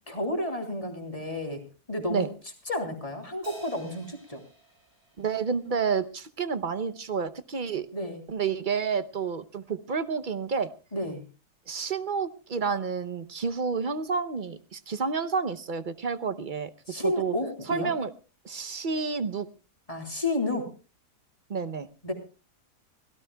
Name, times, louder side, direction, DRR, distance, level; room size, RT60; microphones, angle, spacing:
voice 1, 0.1-1.6 1.9-2.2 2.7-4.4 7.9-8.2 10.9-11.2 16.9-17.9 19.9-20.7 22.0-22.1, left 1 dB, 20° left, 3 dB, 3.2 m, -31 dB
Crash cymbal, 3.4-6.1, right 4 dB, 65° right, 6.0 m, -49 dB
voice 2, 5.2-7.9 8.3-10.7 11.7-16.7 17.0-17.3 17.6-18.1 18.4-19.5 21.5-21.9, right 5 dB, 45° right, 13 dB, 0.7 m, -30 dB
24.5 x 17.0 x 2.3 m, 0.34 s
omnidirectional pair, 1.7 m